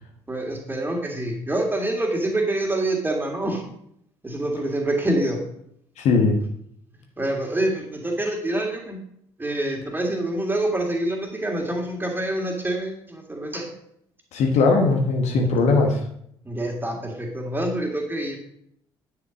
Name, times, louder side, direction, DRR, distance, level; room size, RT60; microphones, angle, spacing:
voice 1, 0.3-3.6 4.2-5.4 7.2-9.0 9.4-13.7 16.4-18.4, right 1 dB, 15° right, 1 dB, 2.7 m, -26 dB
voice 2, 6.0-6.4 14.3-16.0, left 3 dB, 55° left, 3 dB, 1.3 m, -19 dB
9.6 x 5.8 x 5.2 m, 0.70 s
figure-of-eight pair, 50°, 14 cm